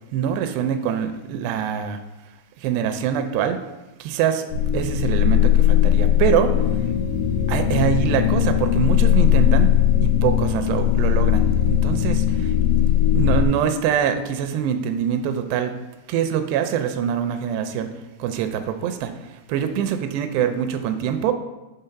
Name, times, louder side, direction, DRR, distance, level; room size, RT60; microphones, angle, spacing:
voice 1, 0.1-2.0 2.6-3.6 4.0-4.5 4.7-6.5 7.5-9.7 10.0-12.5 13.1-15.7 16.1-17.9 18.2-19.1 19.5-21.3, right 9 dB, 85° right, 8 dB, 2.6 m, -24 dB
sound 1, 4.5-13.5, left 11 dB, 80° left, 2.6 m, -19 dB
8.9 x 3.5 x 5.7 m, 1.1 s
omnidirectional pair, 4.9 m